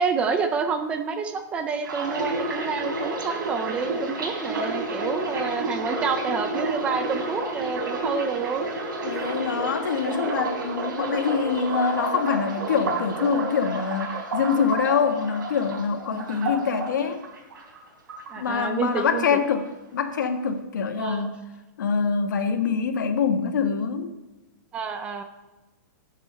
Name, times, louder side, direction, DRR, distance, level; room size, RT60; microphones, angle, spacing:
voice 1, 0.0-8.7 16.3-16.7 18.3-19.3 21.0-21.3 24.7-25.2, right 5 dB, 10° right, 8 dB, 0.4 m, -28 dB
sound 1, 1.8-17.8 18.1-19.0 19.3-19.6, right 2 dB, 90° right, 3.7 m, -30 dB
voice 2, 9.0-17.2 18.4-19.7 19.9-21.4 21.8-24.1, left 6 dB, 70° left, 7 dB, 1.4 m, -25 dB
12.0 x 7.4 x 5.6 m, 1.1 s
hypercardioid pair, 175°, 10 cm